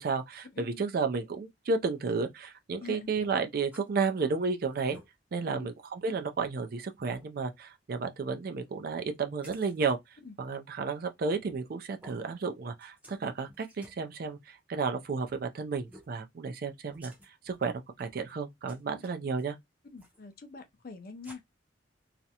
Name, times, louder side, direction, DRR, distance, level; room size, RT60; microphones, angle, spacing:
voice 1, 0.0-5.0 5.3-10.0 10.4-17.1 17.5-19.6, right 4 dB, 55° right, 0.4 m, -32 dB
voice 2, 0.5-0.8 2.8-3.1 5.4-5.7 10.2-10.3 19.0-19.3 19.9-21.4, left 4 dB, 55° left, 0.5 m, -45 dB
sound 1, 3.2-3.9 4.3-4.4 4.7-5.1 5.7-5.8 6.3-6.5 7.1-7.3 9.4-9.9 11.3-11.7 12.0-12.2 12.8-13.2 13.5-14.0 15.3-15.4 15.9-16.2 16.9-17.6 17.9-18.3 18.7-19.5 20.0-20.2 21.2-21.4, equal, 10° right, 0.6 m, -54 dB
2.4 x 2.0 x 2.8 m
head